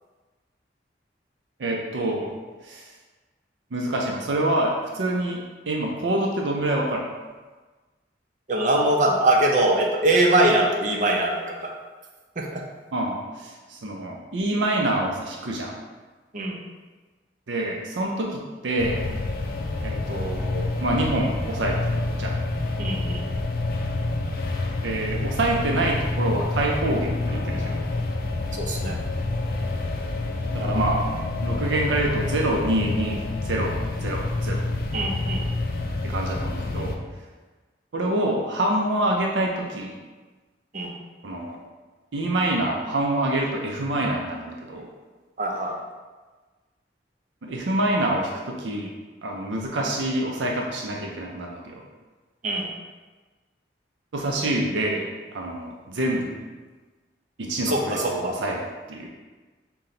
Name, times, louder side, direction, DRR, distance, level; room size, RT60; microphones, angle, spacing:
voice 1, 1.6-2.3 2.6-2.9 3.7-7.1 12.9-15.8 17.5-19.0 19.8-22.4 24.8-27.8 30.5-31.1 31.4-34.6 36.0-37.0 37.9-39.9 41.2-41.6 42.1-44.9 47.4-48.9 49.2-51.8 54.1-55.1 55.3-56.4 57.4-59.1, right 1 dB, 90° right, 0 dB, 0.5 m, -26 dB
voice 2, 8.5-11.7 12.4-12.6 16.3-16.6 22.8-23.2 28.5-29.0 34.9-35.4 40.7-40.9 45.4-45.8 52.4-52.7 57.6-58.3, right 1 dB, 45° right, 0 dB, 0.6 m, -22 dB
sound 1, 18.8-37.0, left 2 dB, 55° left, 0.4 m, -28 dB
5.7 x 2.2 x 3.8 m, 1.3 s
head